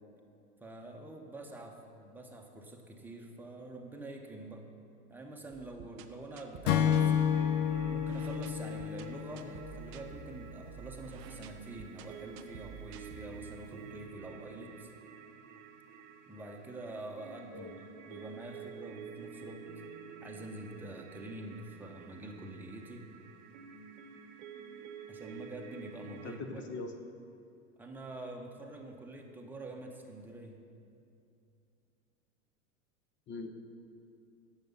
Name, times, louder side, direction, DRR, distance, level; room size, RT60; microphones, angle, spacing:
voice 1, 0.6-4.7 5.1-7.3 7.9-14.9 16.3-19.7 20.2-23.0 25.1-26.6 27.8-30.6, right 2 dB, 5° right, 1 dB, 1.0 m, -46 dB
sound 1, 5.5-13.7, right 10 dB, 25° right, 0.3 m, -50 dB
Acoustic guitar / Strum, 6.7-10.1, left 8 dB, 55° left, 0.7 m, -30 dB
sound 2, 6.7-26.4, right 6 dB, 50° right, 1.0 m, -50 dB
voice 2, 26.2-26.9 33.3-33.5, left 3 dB, 25° left, 6 dB, 0.8 m, -41 dB
10.5 x 7.2 x 5.6 m, 2.5 s
figure-of-eight pair, 90°, 46 cm